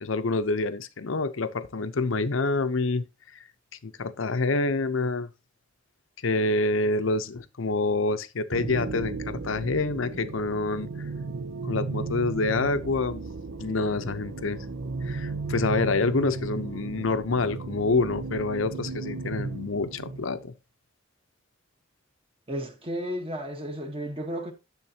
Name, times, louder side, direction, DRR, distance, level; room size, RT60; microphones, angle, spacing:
voice 1, 0.0-3.0 3.3-3.4 3.8-5.3 6.2-10.9 11.6-13.2 13.6-14.6 15.0-20.5, left 3 dB, 85° left, 0.8 m, -27 dB
sound 1, 8.5-20.5, right 3 dB, 80° right, 0.7 m, -35 dB
voice 2, 22.5-24.5, equal, 30° right, 1.2 m, -33 dB
10.5 x 7.2 x 2.8 m
head